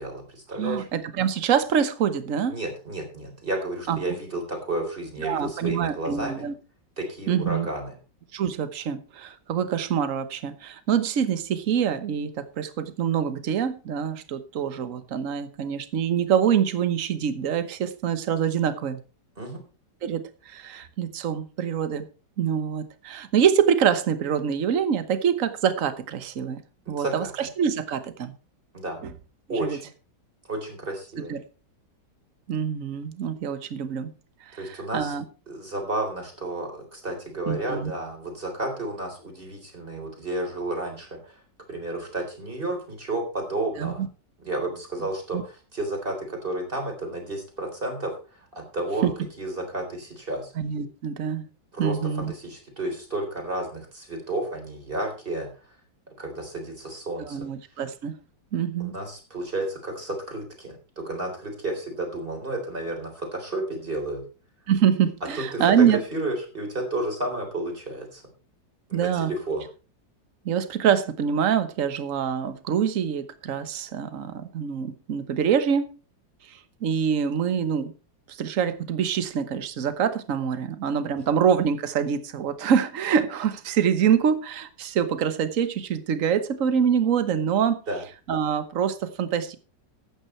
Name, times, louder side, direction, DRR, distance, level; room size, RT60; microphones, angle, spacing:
voice 1, 0.0-0.9 2.5-6.5 7.0-7.9 19.4-19.6 26.9-27.3 28.7-29.0 29.5-29.8 30.5-31.4 34.6-35.1 35.5-41.4 41.7-44.0 44.4-48.1 48.5-49.1 49.4-50.5 51.7-52.0 52.3-55.5 56.2-57.4 58.8-64.2 65.3-68.2 68.9-69.6 81.3-81.4 87.9-88.0, right 2 dB, 30° right, 3 dB, 4.0 m, -31 dB
voice 2, 0.6-2.6 3.9-4.0 5.2-6.5 7.3-7.7 8.3-19.0 20.0-22.1 22.4-26.6 26.9-28.3 29.0-29.1 29.6-29.8 31.3-31.4 32.5-34.1 34.5-35.2 37.5-37.9 43.8-44.1 45.3-45.4 49.0-49.1 50.6-51.4 51.8-52.3 57.2-58.1 58.5-58.9 64.7-66.0 68.9-69.3 70.4-75.9 76.5-77.9 78.3-87.8 88.3-89.6, right 8 dB, 50° right, 12 dB, 1.4 m, -25 dB
13.0 x 9.1 x 4.4 m, 0.34 s
omnidirectional pair, 2.0 m